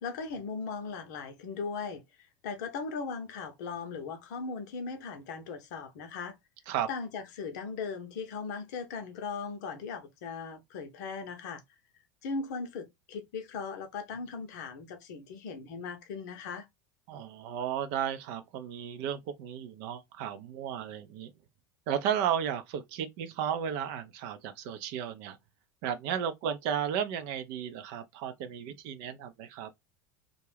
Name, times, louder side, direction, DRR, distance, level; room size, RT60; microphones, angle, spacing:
voice 1, 0.0-2.0 2.4-6.3 6.9-11.6 12.2-16.7, left 5 dB, 65° left, 0.6 m, -38 dB
voice 2, 17.1-21.3 21.9-25.4 25.8-29.7, right 9 dB, 55° right, 0.5 m, -34 dB
2.4 x 2.2 x 3.2 m
hypercardioid pair, 80°, 10 cm